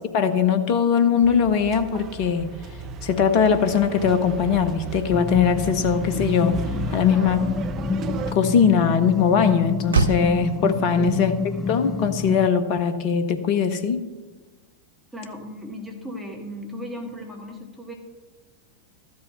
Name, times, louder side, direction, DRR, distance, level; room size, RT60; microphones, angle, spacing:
voice 1, 0.1-2.5 3.0-6.6 6.9-7.4 8.3-11.3 11.7-14.0, left 6 dB, 45° left, 9 dB, 0.9 m, -20 dB
sound 1, 1.2-8.3, right 4 dB, 30° right, 0.7 m, -35 dB
sound 2, 5.1-12.5, left 4 dB, 10° left, 0.4 m, -28 dB
voice 2, 7.1-7.4 11.0-11.3 15.1-17.9, equal, 5° right, 0 dB, 1.7 m, -37 dB
Motor vehicle (road), 9.9-14.5, right 5 dB, 75° right, 0.5 m, -33 dB
13.0 x 5.4 x 8.0 m, 1.3 s
figure-of-eight pair, 90°, 0 cm